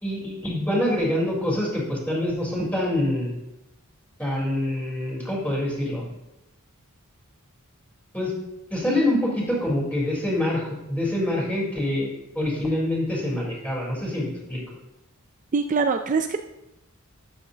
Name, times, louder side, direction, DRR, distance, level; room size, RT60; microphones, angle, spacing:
voice 1, 0.0-3.3 4.2-6.0 8.1-8.3 8.7-14.6, left 1 dB, 5° left, -4 dB, 3.9 m, -25 dB
voice 2, 15.5-16.4, right 4 dB, 35° right, 6 dB, 0.4 m, -23 dB
13.0 x 10.0 x 2.9 m, 0.90 s
head